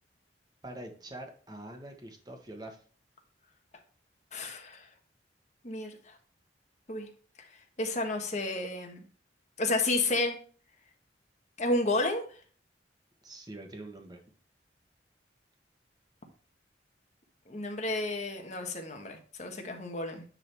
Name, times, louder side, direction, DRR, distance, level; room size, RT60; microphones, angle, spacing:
voice 1, 0.6-2.8 13.2-14.2, right 1 dB, 20° right, 4 dB, 1.4 m, -44 dB
voice 2, 4.3-4.9 5.6-6.1 6.9-7.1 7.8-9.0 9.6-10.4 11.6-12.2 17.5-20.2, left 2 dB, 40° left, 4 dB, 1.4 m, -31 dB
9.8 x 3.9 x 4.4 m, 0.41 s
head